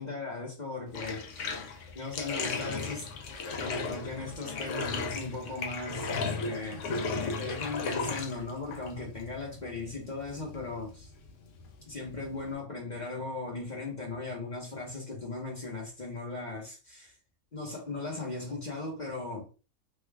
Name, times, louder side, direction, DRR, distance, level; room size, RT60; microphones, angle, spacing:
voice 1, 0.0-1.6 1.9-3.1 3.6-11.1 11.9-17.1 17.5-19.5, left 3 dB, 35° left, 1.0 m, -38 dB
Bathtub (filling or washing), 0.9-12.5, left 4 dB, 70° left, 0.9 m, -36 dB
3.2 x 2.3 x 3.4 m
omnidirectional pair, 1.4 m